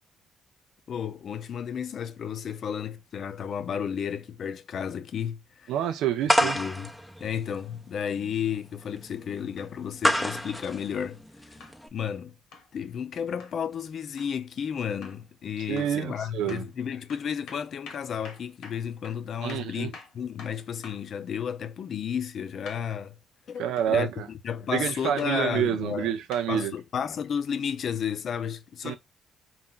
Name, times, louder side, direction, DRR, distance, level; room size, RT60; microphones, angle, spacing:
voice 1, 0.9-5.7 6.4-6.9 7.2-11.2 11.5-11.6 11.9-12.3 12.7-23.2 23.5-26.1 26.5-29.0, left 8 dB, 60° left, 0.6 m, -32 dB
voice 2, 5.7-6.6 15.7-16.6 19.4-19.9 23.6-24.3 24.7-26.7 28.8-29.0, right 10 dB, 85° right, 0.4 m, -28 dB
sound 1, 6.3-11.9, equal, ahead, 0.6 m, -29 dB
sound 2, 9.6-9.7 10.7-10.9 11.6-11.8 12.5-12.7 13.4-13.6 14.2-14.4 15.0-15.3 15.8-16.0 16.5-16.7 17.1-21.1 22.7-22.9 23.8-23.9 25.2-25.4 26.3-26.5 27.4-27.5, left 4 dB, 85° left, 1.1 m, -47 dB
4.4 x 2.5 x 3.7 m
cardioid pair, 90°, 0 cm